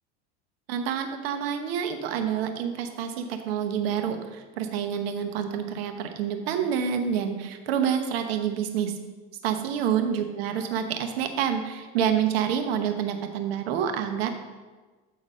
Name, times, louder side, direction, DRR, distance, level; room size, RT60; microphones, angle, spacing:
voice 1, 0.7-8.9 9.4-14.3, right 8 dB, 90° right, 5 dB, 1.0 m, -28 dB
8.5 x 4.0 x 5.3 m, 1.3 s
supercardioid pair, 110°, 30 cm